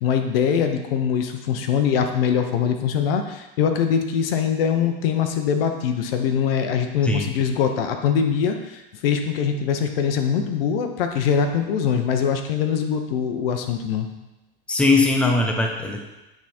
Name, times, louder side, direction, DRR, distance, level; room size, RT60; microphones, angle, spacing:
voice 1, 0.0-14.1, left 7 dB, 70° left, 6 dB, 0.9 m, -23 dB
voice 2, 14.7-16.0, left 3 dB, 5° left, 1 dB, 0.7 m, -20 dB
9.1 x 3.7 x 4.3 m, 1.0 s
supercardioid pair, 125°, 30 cm